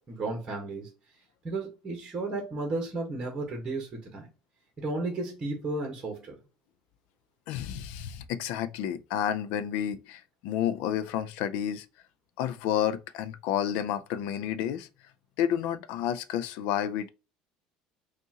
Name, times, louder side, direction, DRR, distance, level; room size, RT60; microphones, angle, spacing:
voice 1, 0.1-0.9 1.4-4.3 4.8-6.4, right 2 dB, 25° right, 1.3 m, -33 dB
voice 2, 7.5-11.9 12.4-14.9 15.4-17.1, left 10 dB, 70° left, 0.4 m, -30 dB
5.4 x 2.5 x 2.9 m
cardioid pair, 155°, 2 cm